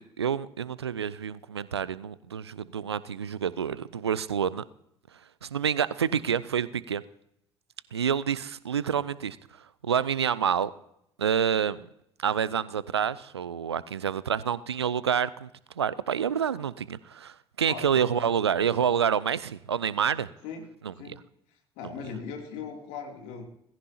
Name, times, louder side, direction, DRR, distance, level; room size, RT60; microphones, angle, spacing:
voice 1, 0.0-4.6 5.4-7.0 7.9-9.4 9.8-10.7 11.2-11.9 12.2-15.5 15.8-20.3 20.8-20.9, right 8 dB, 80° right, 0.4 m, -28 dB
voice 2, 17.6-18.3 20.4-20.6 20.9-21.2 21.8-23.5, left 6 dB, 60° left, 2.8 m, -39 dB
18.0 x 16.0 x 2.8 m
figure-of-eight pair, 55°, 14 cm